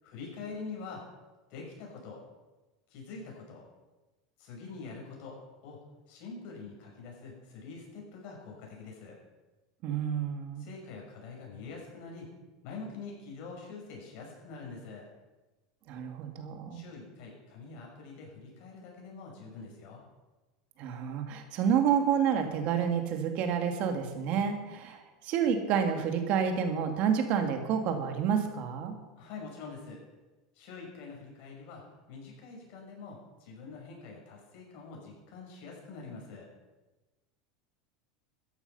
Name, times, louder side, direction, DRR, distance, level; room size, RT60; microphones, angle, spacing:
voice 1, 0.0-1.0 1.5-2.2 2.9-3.6 4.4-5.8 6.1-9.2 10.6-12.3 12.6-15.1 16.7-20.0 29.2-30.0 30.5-31.8 32.1-36.5, left 4 dB, 60° left, -1 dB, 6.0 m, -45 dB
voice 2, 9.8-10.7 15.9-16.8 20.8-29.0, right 7 dB, 55° right, 6 dB, 2.3 m, -29 dB
14.0 x 10.5 x 5.6 m, 1.2 s
hypercardioid pair, 100°, 3 cm